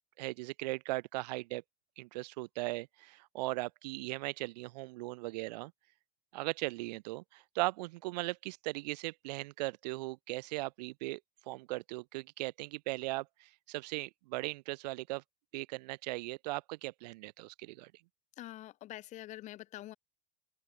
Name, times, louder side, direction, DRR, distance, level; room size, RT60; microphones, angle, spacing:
voice 1, 0.0-1.6 2.0-5.7 6.3-11.2 11.5-15.2 15.5-17.9, right 21 dB, 85° right, 0.5 m, -38 dB
voice 2, 18.4-19.9, left 15 dB, 35° left, 1.3 m, -46 dB
open air
supercardioid pair, 150°, 21 cm